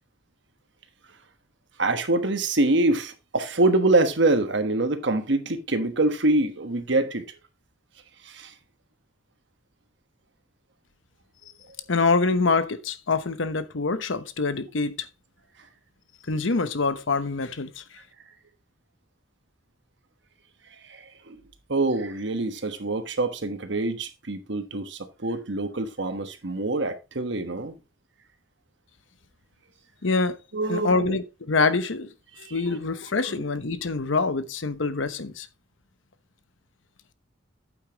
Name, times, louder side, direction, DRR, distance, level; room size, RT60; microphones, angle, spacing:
voice 1, 1.8-7.2 8.2-8.5 20.7-21.4 21.7-27.7 30.5-31.1 32.4-32.8 33.2-33.3, right 2 dB, 65° right, 1.3 m, -25 dB
voice 2, 11.9-15.1 16.3-17.8 30.0-30.4 30.7-32.1 32.5-35.5, left 3 dB, 75° left, 0.9 m, -25 dB
8.7 x 8.4 x 3.0 m
head